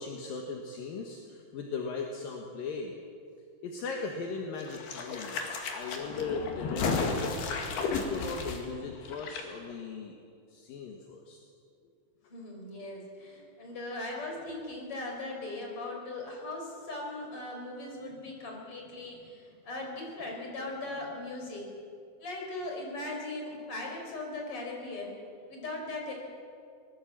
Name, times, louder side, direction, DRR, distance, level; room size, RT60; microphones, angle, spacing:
voice 1, 0.0-3.0 3.6-7.6 7.9-10.2 10.5-11.4, left 4 dB, 65° left, 1 dB, 3.1 m, -38 dB
sound 1, 4.6-9.4 9.7-9.8, left 4 dB, 85° left, 4.2 m, -33 dB
voice 2, 12.3-21.7 22.2-25.2 25.5-26.1, left 2 dB, 35° left, 0 dB, 5.3 m, -39 dB
24.0 x 20.0 x 7.5 m, 2.4 s
omnidirectional pair, 4.5 m